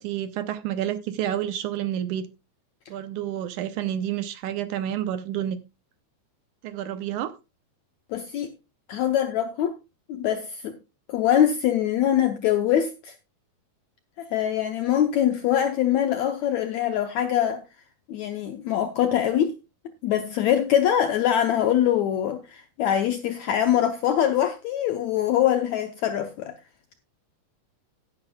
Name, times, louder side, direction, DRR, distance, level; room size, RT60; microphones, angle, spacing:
voice 1, 0.0-2.3 2.9-5.6 6.6-7.4, right 11 dB, 75° right, 1.9 m, -29 dB
voice 2, 8.1-8.5 8.9-9.7 10.1-10.8 11.1-13.1 14.2-17.6 18.1-19.6 20.0-26.5, left 10 dB, 80° left, 1.6 m, -23 dB
16.5 x 9.8 x 2.3 m
omnidirectional pair, 4.3 m